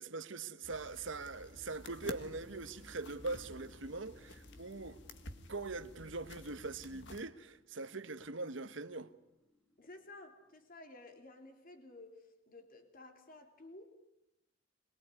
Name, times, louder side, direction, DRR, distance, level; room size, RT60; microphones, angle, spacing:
voice 1, 0.0-5.0 5.5-9.1, right 3 dB, 65° right, 1.4 m, -42 dB
sound 1, 0.6-7.2, left 2 dB, 60° left, 1.8 m, -52 dB
sound 2, 1.0-11.0, left 1 dB, ahead, 2.7 m, -64 dB
voice 2, 9.8-13.9, left 2 dB, 45° left, 3.1 m, -54 dB
24.5 x 22.5 x 9.8 m
head